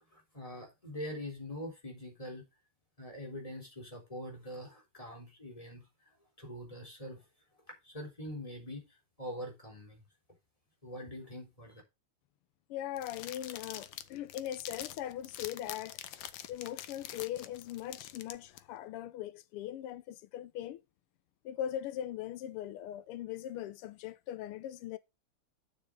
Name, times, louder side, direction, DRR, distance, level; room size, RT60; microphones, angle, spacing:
voice 1, 0.1-2.5 3.0-5.9 6.4-7.2 7.8-8.8 9.2-10.0 10.8-11.8, equal, 15° left, 3.8 m, -43 dB
voice 2, 12.7-16.0 16.5-20.8 21.4-25.0, left 11 dB, 90° left, 1.6 m, -40 dB
sound 1, 13.0-18.6, left 11 dB, 70° left, 1.4 m, -45 dB
9.3 x 7.0 x 3.6 m
omnidirectional pair, 2.4 m